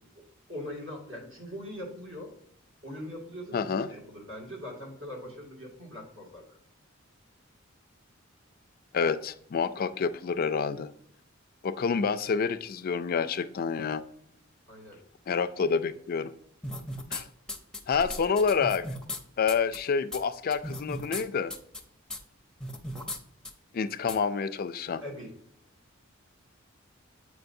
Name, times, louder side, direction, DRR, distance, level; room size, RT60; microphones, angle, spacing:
voice 1, 0.5-2.3 2.8-6.4 14.7-15.0 25.0-25.3, left 1 dB, 70° right, -1 dB, 2.2 m, -41 dB
voice 2, 3.5-3.9 8.9-10.9 11.6-14.0 15.3-16.3 17.1-17.3 17.9-18.8 19.4-21.5 23.7-25.0, left 5 dB, 45° left, 13 dB, 0.4 m, -28 dB
sound 1, 16.6-17.2 17.5-19.2 19.5-19.8 20.1-20.2 20.5-21.2 21.5-21.8 22.1-22.2 22.6-23.2 23.5-23.6 24.1-24.2, left 1 dB, 5° left, 0.6 m, -36 dB
7.6 x 5.0 x 2.6 m, 0.68 s
head